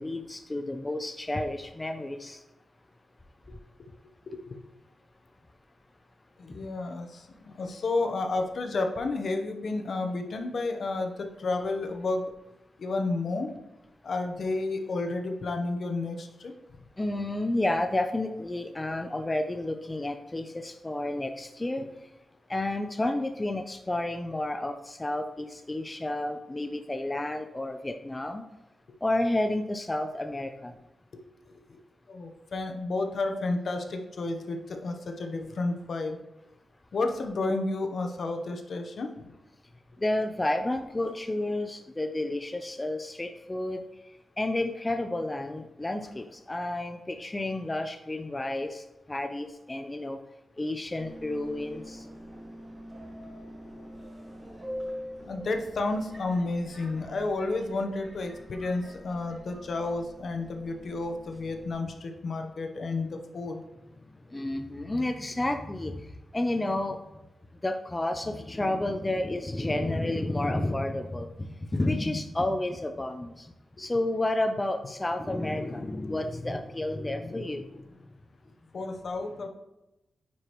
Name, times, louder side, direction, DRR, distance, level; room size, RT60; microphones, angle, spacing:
voice 1, 0.0-2.4 17.0-21.9 22.5-28.4 29.0-30.7 40.0-43.8 44.4-50.2 50.6-52.0 64.3-66.0 66.3-67.0 67.6-73.5 73.8-77.9, left 1 dB, 20° left, 6 dB, 0.4 m, -31 dB
voice 2, 4.3-4.6 6.4-12.3 12.8-13.5 14.0-16.5 31.1-31.2 31.7-31.8 32.1-36.2 36.9-39.3 53.7-53.8 55.2-63.6 78.7-79.5, left 3 dB, 65° left, 5 dB, 0.9 m, -31 dB
Subway metro underground, 51.0-61.7, equal, 35° right, 1.9 m, -44 dB
9.4 x 4.8 x 3.0 m, 0.95 s
wide cardioid pair, 110°, 0 cm